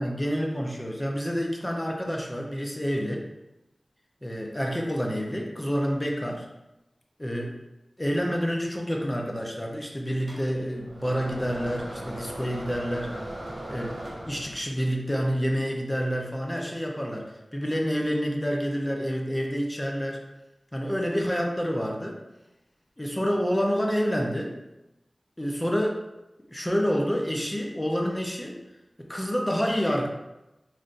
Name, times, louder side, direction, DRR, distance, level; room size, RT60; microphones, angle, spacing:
voice 1, 0.0-3.3 4.2-6.5 7.2-7.6 8.0-13.2 13.7-20.2 20.7-22.2 23.0-24.6 25.4-26.0 26.5-28.6 29.0-30.1, equal, 15° left, 0 dB, 0.5 m, -28 dB
sound 1, 10.3-14.8, right 1 dB, 85° right, 0.6 m, -38 dB
3.2 x 2.6 x 2.4 m, 0.96 s
wide cardioid pair, 50°, 0 cm